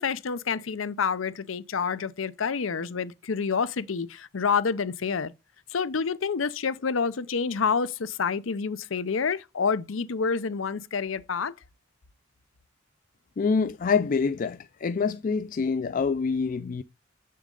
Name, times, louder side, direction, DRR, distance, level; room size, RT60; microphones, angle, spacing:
voice 1, 0.0-5.3 5.7-11.5, left 5 dB, 85° left, 0.6 m, -28 dB
voice 2, 13.4-16.8, left 5 dB, 45° left, 0.4 m, -26 dB
7.4 x 6.5 x 3.8 m
head